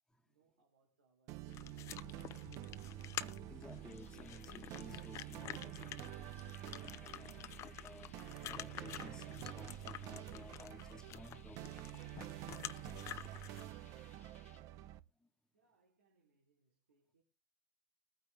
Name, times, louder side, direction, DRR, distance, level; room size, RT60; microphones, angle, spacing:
voice 1, 0.2-2.1 15.5-17.2, right 4 dB, 80° right, 3.3 m, -77 dB
sound 1, 1.3-15.0, right 15 dB, 50° right, 0.8 m, -49 dB
sound 2, 1.5-13.7, left 12 dB, 40° left, 0.7 m, -50 dB
voice 2, 3.5-6.1 6.8-8.1 8.4-12.5 13.4-13.5 14.5-14.6, equal, 10° left, 1.7 m, -56 dB
sound 3, 3.6-14.6, left 8 dB, 80° left, 0.8 m, -66 dB
21.0 x 9.4 x 3.4 m
figure-of-eight pair, 80°, 7 cm